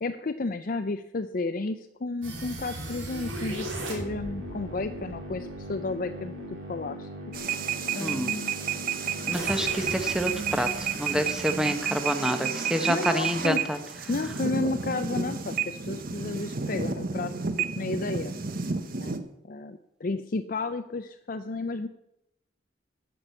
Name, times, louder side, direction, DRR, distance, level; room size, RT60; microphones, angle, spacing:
voice 1, 0.0-6.3 6.7-7.1 7.9-8.6 12.9-13.6 14.1-17.3 17.8-18.4 19.0-19.2 19.4-21.9, left 3 dB, 45° left, 8 dB, 0.5 m, -32 dB
sound 1, 2.2-13.2, right 1 dB, 80° right, 3.5 m, -38 dB
sound 2, 7.3-19.2, right 6 dB, 45° right, 0.9 m, -31 dB
voice 2, 8.0-8.3 9.3-10.7 10.9-13.8, equal, 5° right, 8 dB, 0.9 m, -27 dB
12.0 x 6.1 x 8.2 m, 0.83 s
head